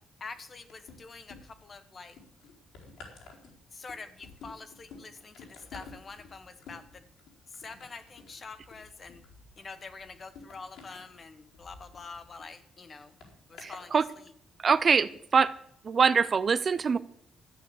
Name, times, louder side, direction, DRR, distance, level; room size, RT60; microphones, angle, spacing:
voice 1, 0.2-2.2 3.7-7.0 7.5-9.2 9.6-13.2 13.5-14.0, left 4 dB, 35° left, 11 dB, 1.6 m, -46 dB
sound 1, 0.7-1.7 2.1-12.5 13.2-13.9 14.6-14.8, left 4 dB, 80° left, 4.4 m, -51 dB
voice 2, 13.6-14.1 14.6-15.5 15.8-17.0, right 5 dB, 40° right, 15 dB, 0.6 m, -24 dB
13.0 x 9.1 x 8.1 m, 0.66 s
cardioid pair, 105°, 0 cm